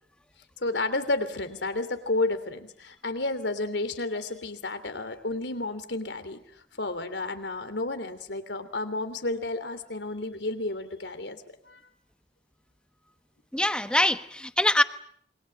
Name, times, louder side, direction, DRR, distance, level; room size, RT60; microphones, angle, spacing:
voice 1, 0.6-6.4 6.8-11.8, left 2 dB, 85° left, 11 dB, 3.0 m, -31 dB
voice 2, 13.5-14.8, left 1 dB, 5° left, 11 dB, 1.0 m, -23 dB
27.5 x 24.0 x 7.7 m, 0.65 s
head